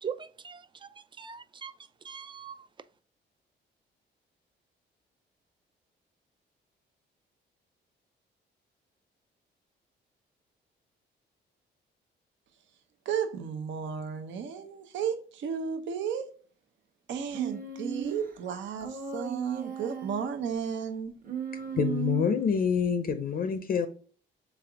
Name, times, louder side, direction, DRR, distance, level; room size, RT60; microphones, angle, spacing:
voice 1, 0.0-1.7 2.0-2.7, right 7 dB, 25° right, 0.3 m, -41 dB
voice 2, 13.1-16.3 17.1-21.1, right 7 dB, 70° right, 0.6 m, -34 dB
Human voice, 17.3-18.3 18.8-20.4 21.2-22.5, right 7 dB, 45° right, 1.0 m, -35 dB
voice 3, 21.7-23.9, left 7 dB, 45° left, 0.5 m, -27 dB
3.6 x 3.4 x 3.4 m
cardioid pair, 90°, 20 cm